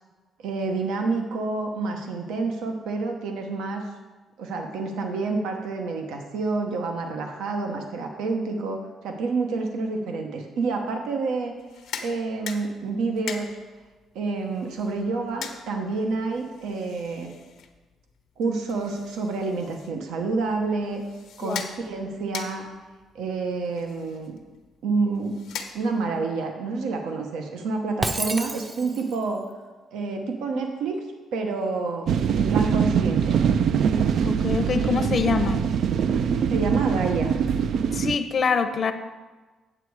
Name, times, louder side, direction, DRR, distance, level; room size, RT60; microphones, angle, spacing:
voice 1, 0.4-3.8 4.4-11.5 12.0-13.5 14.1-17.3 18.4-21.0 21.4-22.7 23.1-24.4 24.8-25.3 25.7-29.4 29.9-31.0 31.3-32.1 32.3-33.4 36.5-37.3, right 3 dB, 90° right, 3 dB, 0.9 m, -28 dB
sound 1, 11.6-26.2, left 7 dB, 85° left, 1.0 m, -42 dB
Shatter, 28.0-29.2, right 2 dB, 20° right, 0.6 m, -30 dB
sound 2, 32.1-38.2, right 7 dB, 65° right, 0.3 m, -23 dB
voice 2, 34.2-35.7 37.9-38.9, left 6 dB, 50° left, 9 dB, 0.7 m, -25 dB
9.1 x 7.1 x 4.7 m, 1.3 s
cardioid pair, 90°, 0 cm